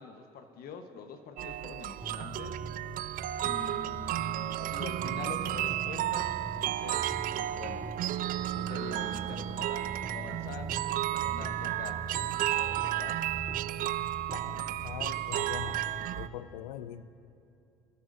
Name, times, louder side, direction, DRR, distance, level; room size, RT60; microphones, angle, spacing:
voice 1, 0.0-2.6 3.4-7.1 7.4-7.8 8.6-12.0 12.3-13.2, left 5 dB, 60° left, 7 dB, 1.1 m, -45 dB
sound 1, 1.4-16.3, right 13 dB, 55° right, 0.4 m, -33 dB
sound 2, 2.0-16.0, right 1 dB, 10° right, 2.3 m, -44 dB
voice 2, 14.3-15.8 16.2-17.1, left 12 dB, 80° left, 15 dB, 0.5 m, -42 dB
26.5 x 13.0 x 2.6 m, 2.7 s
hypercardioid pair, 60°, 17 cm